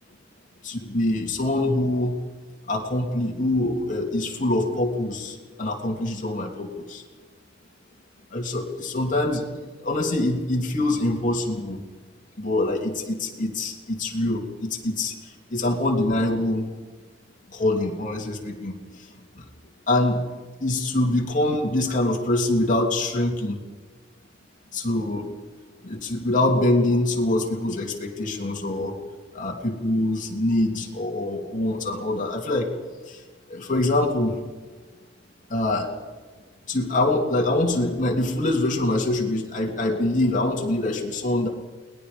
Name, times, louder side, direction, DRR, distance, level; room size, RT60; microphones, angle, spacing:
voice 1, 0.6-2.2 2.7-7.0 8.3-9.5 9.8-11.8 12.4-16.7 17.5-18.8 19.1-19.5 19.9-20.2 20.6-23.6 24.7-25.3 25.8-29.0 29.3-32.7 33.1-33.2 33.5-34.4 35.5-35.9 36.7-41.5, left 1 dB, 45° left, 0 dB, 3.0 m, -24 dB
29.0 x 20.0 x 5.3 m, 1.3 s
head